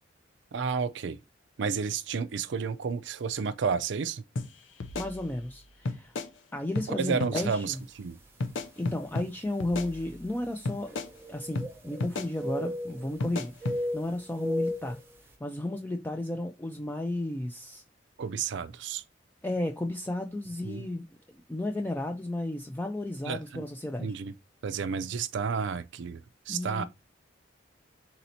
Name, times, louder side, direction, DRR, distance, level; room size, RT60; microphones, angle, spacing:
voice 1, 0.5-1.2 1.6-4.2 7.0-8.2 18.2-19.0 20.6-20.8 23.3-23.6 24.0-24.3 24.6-26.2 26.5-26.8, right 5 dB, 65° right, 0.4 m, -31 dB
sound 1, 4.4-4.5 4.8-5.6 5.9-6.3 6.8-6.9 7.2-7.5 8.4-9.3 9.6-10.3 10.7-11.1 11.6-11.7 12.0-12.3 13.2-13.8, left 3 dB, 80° left, 0.6 m, -33 dB
voice 2, 4.9-6.1 6.5-7.8 8.8-11.0 11.3-15.0 15.4-17.8 19.4-21.0 21.5-24.1 26.5-26.8, left 1 dB, 10° left, 0.3 m, -33 dB
sound 2, 8.0-8.1 8.9-9.0 10.8-12.1 12.4-13.2 13.6-15.0, left 1 dB, 10° right, 0.8 m, -34 dB
4.0 x 2.7 x 4.2 m
head